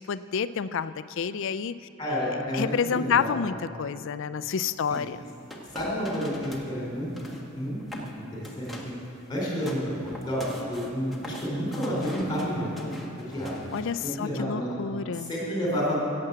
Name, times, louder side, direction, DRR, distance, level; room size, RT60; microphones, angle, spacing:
voice 1, 0.0-1.7 2.3-5.2 13.7-15.3, left 6 dB, 60° left, 15 dB, 0.4 m, -29 dB
voice 2, 2.0-3.4 5.7-7.3 7.5-8.9 9.3-12.7 13.2-13.5 13.8-14.7 15.1-16.0, equal, 20° left, -4 dB, 3.7 m, -30 dB
sound 1, 4.8-6.7 7.0-7.5 7.8-8.1 8.4-9.0 9.3-14.0, equal, ahead, 1.4 m, -40 dB
15.5 x 7.7 x 8.0 m, 2.6 s
head